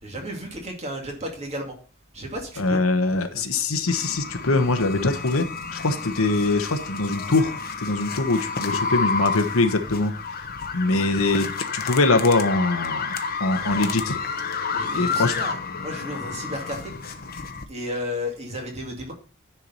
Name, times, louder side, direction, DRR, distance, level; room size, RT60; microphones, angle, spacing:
voice 1, 0.0-1.8 2.1-2.8 3.2-3.5 10.8-11.1 13.6-13.9 14.7-16.9 17.7-19.1, left 1 dB, 30° right, 1 dB, 2.3 m, -34 dB
voice 2, 2.6-5.5 5.7-10.1 10.7-14.2 14.9-15.4, left 3 dB, 85° left, 8 dB, 1.2 m, -23 dB
sound 1, 3.9-17.6, left 5 dB, 45° left, 0.9 m, -30 dB
10.0 x 4.7 x 5.4 m, 0.40 s
head